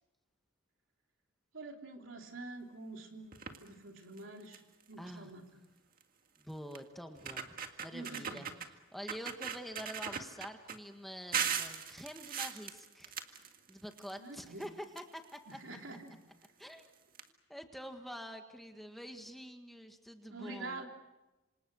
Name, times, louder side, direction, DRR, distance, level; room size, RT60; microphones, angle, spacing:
voice 1, 1.5-4.6 4.9-5.5 7.9-8.4 14.2-14.6 15.5-16.2 20.3-20.9, right 2 dB, 70° right, 2 dB, 3.6 m, -46 dB
sound 1, 3.3-3.7 4.2-4.3 4.5-4.8 6.0-6.1 6.7-6.8 7.2-8.7 9.1-10.8 11.3-14.1 14.4-15.5 16.4-16.5 16.8-16.9 17.1-17.2, right 7 dB, 45° right, 1.9 m, -39 dB
voice 2, 5.0-5.3 6.4-15.6 16.6-16.9 17.5-20.8, equal, ahead, 4 dB, 1.7 m, -47 dB
27.5 x 26.5 x 6.4 m, 1.0 s
head